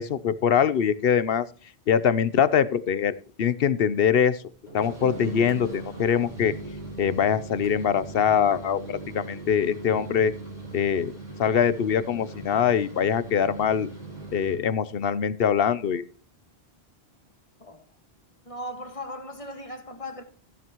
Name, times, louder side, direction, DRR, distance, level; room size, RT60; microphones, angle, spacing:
voice 1, 0.0-1.5 1.9-4.4 4.7-6.5 7.0-10.3 10.7-11.1 11.4-13.9 14.3-16.0, left 8 dB, 65° left, 0.9 m, -23 dB
sound 1, 4.7-14.7, right 3 dB, 45° right, 6.0 m, -39 dB
voice 2, 18.4-20.2, left 1 dB, 30° left, 1.6 m, -37 dB
14.5 x 10.5 x 3.0 m
omnidirectional pair, 1.1 m